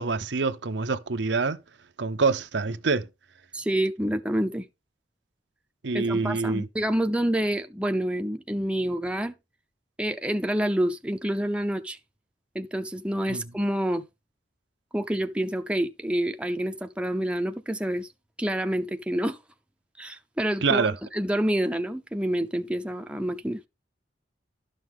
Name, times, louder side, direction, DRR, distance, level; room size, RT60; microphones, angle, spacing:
voice 1, 0.0-1.6 2.0-3.1 5.8-6.7 13.3-13.4 20.6-21.0, right 4 dB, 85° right, 0.8 m, -26 dB
voice 2, 3.5-4.7 5.9-9.3 10.0-12.0 12.5-14.0 14.9-18.1 18.4-19.4 20.0-23.6, right 1 dB, 5° right, 0.6 m, -28 dB
12.0 x 6.2 x 3.6 m
head